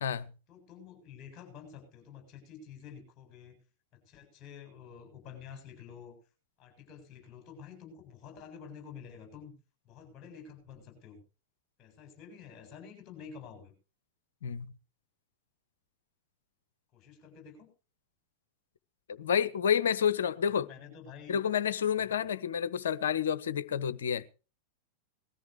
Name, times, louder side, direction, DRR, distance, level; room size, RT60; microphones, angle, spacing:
voice 1, 0.5-3.6 3.9-6.2 6.6-9.5 9.8-11.2 11.8-13.7 16.9-17.7 20.5-21.4 22.0-22.2, left 7 dB, 30° left, 7.4 m, -49 dB
voice 2, 19.1-20.7 21.3-24.2, left 8 dB, 65° left, 0.8 m, -29 dB
20.0 x 14.0 x 3.1 m
figure-of-eight pair, 90°, 0 cm